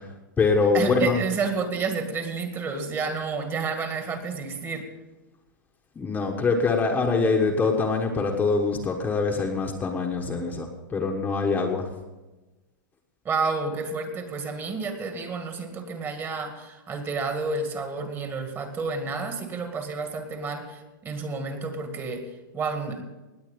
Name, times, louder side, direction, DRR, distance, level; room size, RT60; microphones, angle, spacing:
voice 1, 0.0-1.2 5.9-11.9, left 4 dB, 15° left, 1 dB, 1.3 m, -24 dB
voice 2, 0.7-4.9 13.2-23.0, right 4 dB, 25° right, 6 dB, 2.1 m, -30 dB
19.0 x 8.4 x 5.3 m, 1.1 s
hypercardioid pair, 135°, 11 cm